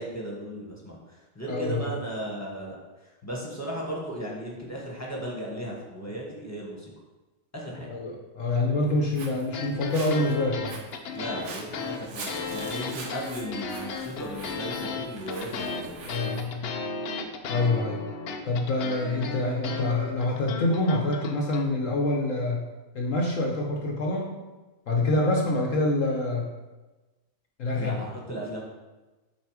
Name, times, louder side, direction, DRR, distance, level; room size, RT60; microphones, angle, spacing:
voice 1, 0.0-6.9 7.5-7.9 11.1-16.0 27.7-28.6, right 1 dB, 10° left, -3 dB, 1.2 m, -36 dB
voice 2, 1.5-1.9 7.9-10.8 16.1-16.8 17.5-18.0 18.4-22.6 22.9-24.4 24.9-26.5 27.6-28.0, left 2 dB, 60° left, 0 dB, 1.0 m, -26 dB
Walk footsteps, 8.8-16.5, right 3 dB, 50° right, 1.0 m, -44 dB
sound 1, 9.5-21.6, left 4 dB, 75° left, 0.5 m, -35 dB
7.1 x 4.1 x 4.8 m, 1.2 s
omnidirectional pair, 1.8 m